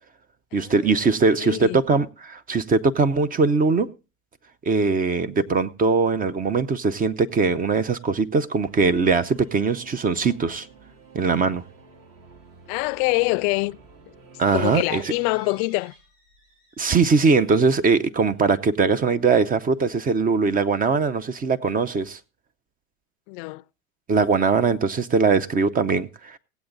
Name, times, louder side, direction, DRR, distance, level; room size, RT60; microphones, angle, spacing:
voice 1, 0.5-3.9 4.6-10.7 11.1-11.6 14.4-15.1 16.8-22.2 24.1-26.4, right 4 dB, 20° right, 0.6 m, -21 dB
voice 2, 1.3-1.8 12.7-13.8 14.0-14.1 14.5-15.9 23.3-23.6, left 26 dB, 50° left, 0.5 m, -25 dB
Singing / Musical instrument, 8.6-15.6, right 5 dB, 45° right, 2.6 m, -49 dB
kettle long, 14.4-19.0 19.6-19.7 20.0-20.1, left 1 dB, 90° right, 4.8 m, -53 dB
17.0 x 8.1 x 3.8 m
hypercardioid pair, 100°, 45 cm